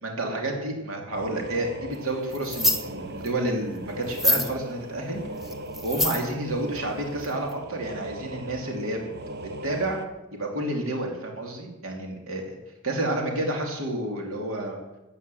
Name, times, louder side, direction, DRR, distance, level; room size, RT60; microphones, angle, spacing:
voice 1, 0.0-5.2 5.8-9.1 9.6-10.0 10.3-12.6 12.8-14.8, right 1 dB, 75° right, 1 dB, 2.7 m, -30 dB
sound 1, 1.1-10.1, right 2 dB, 50° right, 0.9 m, -39 dB
sound 2, 2.3-2.8 3.3-3.4 4.0-4.5 5.4-6.3 7.2-7.3 7.5-7.6, left 1 dB, ahead, 1.4 m, -25 dB
12.5 x 8.6 x 7.6 m, 1.0 s
head